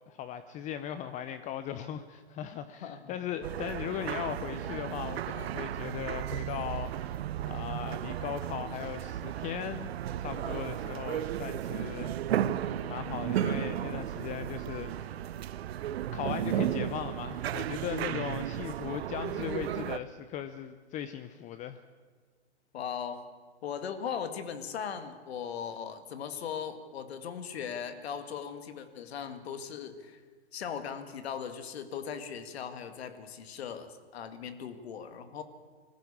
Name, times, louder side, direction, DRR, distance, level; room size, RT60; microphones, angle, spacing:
voice 1, 0.1-7.2 7.4-9.9 10.2-15.2 16.1-21.8, left 10 dB, 20° left, 12 dB, 0.6 m, -38 dB
voice 2, 2.8-3.2 22.7-23.2 23.6-30.2 30.5-35.4, left 7 dB, 65° left, 9 dB, 2.1 m, -38 dB
sound 1, 3.4-20.0, right 11 dB, 65° right, 0.9 m, -34 dB
20.5 x 14.5 x 8.6 m, 1.5 s
hypercardioid pair, 125°, 34 cm